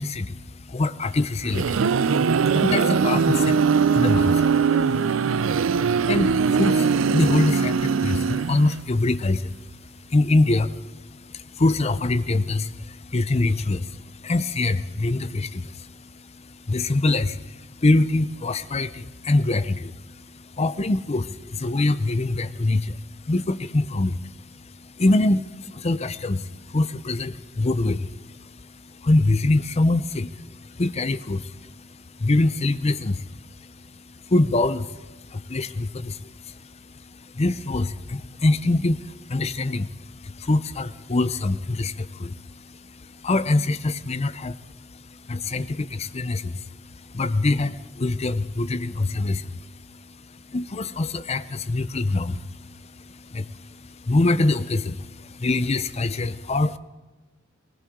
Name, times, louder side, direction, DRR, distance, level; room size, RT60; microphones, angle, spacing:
voice 1, 0.0-56.8, left 2 dB, 30° left, 14 dB, 0.6 m, -25 dB
sound 1, 1.2-8.9, right 5 dB, 75° right, 0.5 m, -21 dB
20.5 x 19.0 x 3.7 m, 1.2 s
head